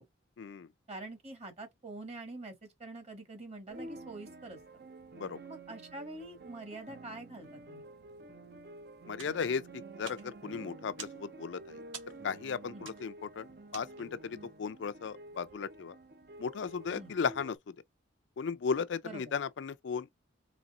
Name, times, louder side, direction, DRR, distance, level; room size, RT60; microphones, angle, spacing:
voice 1, 0.4-0.7 5.2-5.4 9.1-9.6 10.0-11.6 12.2-13.5 13.7-15.9 16.4-17.6 18.4-20.1, left 6 dB, 70° left, 0.4 m, -35 dB
voice 2, 0.9-4.6 5.5-7.9 12.7-12.9 16.9-17.1 19.0-19.3, right 2 dB, 35° right, 1.5 m, -45 dB
sound 1, 3.7-17.6, right 2 dB, 55° right, 0.6 m, -50 dB
sound 2, 9.1-14.3, right 6 dB, 85° right, 1.3 m, -51 dB
4.1 x 3.4 x 2.5 m
head